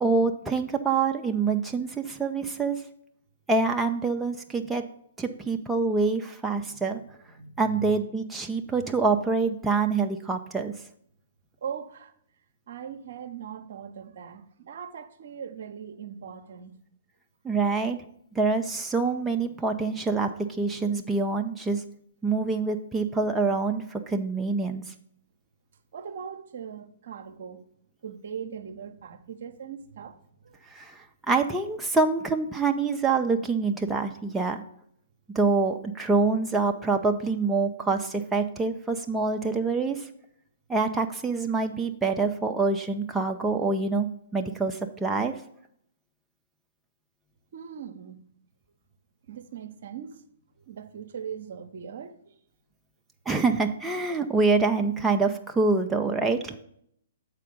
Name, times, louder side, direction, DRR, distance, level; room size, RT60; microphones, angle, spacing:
voice 1, 0.0-2.8 3.5-4.8 5.2-7.0 7.6-10.7 17.4-18.0 18.4-20.3 20.6-21.8 22.2-24.8 30.7-31.0 31.3-34.6 35.3-40.1 40.7-45.3 53.3-56.5, right 4 dB, 10° right, 0.5 m, -26 dB
voice 2, 6.6-7.9 11.6-12.1 12.7-16.8 25.9-27.7 28.0-30.6 47.5-48.2 49.2-50.2 50.6-52.3 54.1-54.2 56.5-56.6, right 7 dB, 55° right, 0.7 m, -40 dB
7.4 x 4.4 x 5.2 m
figure-of-eight pair, 120°, 0 cm